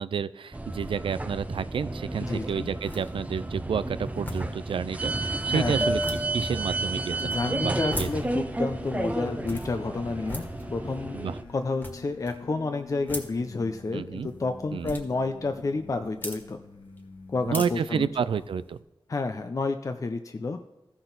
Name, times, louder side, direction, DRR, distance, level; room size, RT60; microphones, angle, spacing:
voice 1, 0.0-6.0 6.3-8.1 11.1-11.4 13.9-14.3 14.7-15.0 17.4-18.8, right 7 dB, 85° right, 15 dB, 0.4 m, -30 dB
sound 1, 0.5-11.4, right 2 dB, 15° right, 0.6 m, -31 dB
voice 2, 2.2-2.7 5.5-5.9 7.2-10.4 10.7-11.3 11.5-16.6 17.3-18.3 19.1-20.6, left 3 dB, 40° left, 8 dB, 0.5 m, -30 dB
sound 2, 2.3-18.8, left 1 dB, 20° left, 1.7 m, -43 dB
sound 3, 6.2-18.1, left 4 dB, 85° left, 1.1 m, -48 dB
14.5 x 5.9 x 4.0 m, 1.0 s
wide cardioid pair, 110°, 9 cm